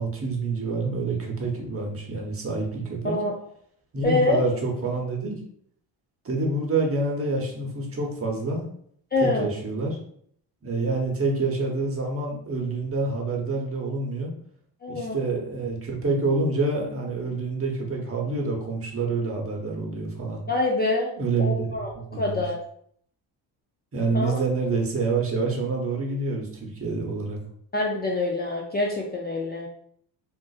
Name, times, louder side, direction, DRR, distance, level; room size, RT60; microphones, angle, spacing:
voice 1, 0.0-3.2 3.9-5.3 6.2-8.7 9.2-10.0 10.6-14.3 14.9-20.4 21.2-21.8 22.1-22.4 23.9-27.4, right 3 dB, 30° right, 0 dB, 0.9 m, -27 dB
voice 2, 4.0-4.4 9.1-9.5 14.8-15.2 20.5-21.1 21.4-22.6 24.1-24.3 27.7-29.7, left 2 dB, 25° left, -1 dB, 0.4 m, -25 dB
3.7 x 2.5 x 2.4 m, 0.65 s
cardioid pair, 90°, 44 cm